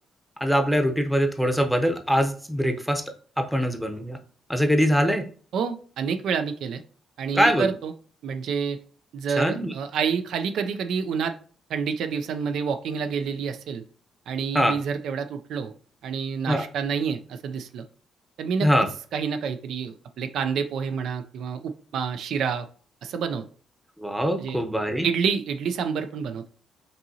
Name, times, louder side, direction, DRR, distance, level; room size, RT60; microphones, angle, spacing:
voice 1, 0.4-3.0 3.4-4.2 4.5-5.2 7.3-7.7 9.4-9.7 14.5-14.8 16.5-16.6 18.6-18.9 24.0-25.1, equal, ahead, 5 dB, 0.7 m, -22 dB
voice 2, 5.5-6.8 7.2-7.9 8.2-8.8 9.1-11.3 11.7-13.8 14.3-15.7 16.0-17.8 18.4-18.7 19.1-22.7 23.0-23.4 24.4-24.6 25.0-26.5, right 6 dB, 75° right, 7 dB, 0.4 m, -28 dB
5.3 x 2.8 x 2.7 m, 0.43 s
cardioid pair, 90°, 0 cm